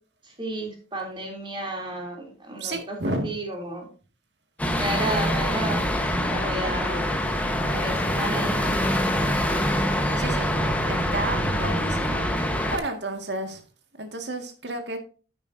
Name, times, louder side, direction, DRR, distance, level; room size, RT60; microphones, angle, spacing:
voice 1, 0.4-2.9 3.2-3.9 4.7-5.8 6.2-7.1 7.7-8.8, right 1 dB, 25° right, 1 dB, 3.0 m, -32 dB
voice 2, 2.6-3.3 10.2-12.3 12.5-13.6 14.0-15.0, right 2 dB, 70° right, 6 dB, 1.9 m, -32 dB
sound 1, 4.6-12.8, equal, 10° left, 1.2 m, -25 dB
10.5 x 8.9 x 2.7 m, 0.37 s
head